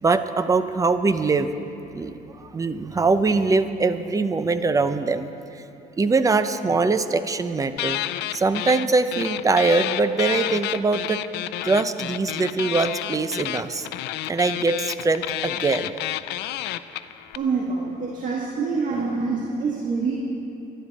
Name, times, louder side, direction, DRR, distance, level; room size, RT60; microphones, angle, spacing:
voice 1, 0.0-1.5 1.9-5.6 6.0-8.0 8.3-11.2 11.6-13.9 14.3-15.9, right 3 dB, 20° right, 11 dB, 0.7 m, -22 dB
sound 1, 7.8-8.9 9.1-17.4, left 14 dB, 85° left, 0.5 m, -29 dB
voice 2, 17.3-20.1, right 4 dB, 50° right, -2 dB, 1.8 m, -26 dB
24.5 x 11.5 x 4.2 m, 2.9 s
cardioid pair, 110°, 17 cm